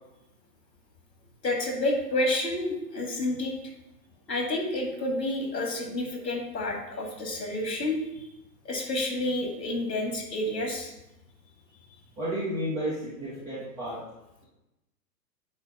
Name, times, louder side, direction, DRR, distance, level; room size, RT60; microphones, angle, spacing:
voice 1, 1.4-3.5 4.3-8.3 8.6-10.9, left 1 dB, 75° left, 1 dB, 2.1 m, -29 dB
voice 2, 12.2-14.0, equal, 10° right, -7 dB, 0.5 m, -32 dB
8.2 x 2.8 x 5.2 m, 0.92 s
figure-of-eight pair, 115°, 50 cm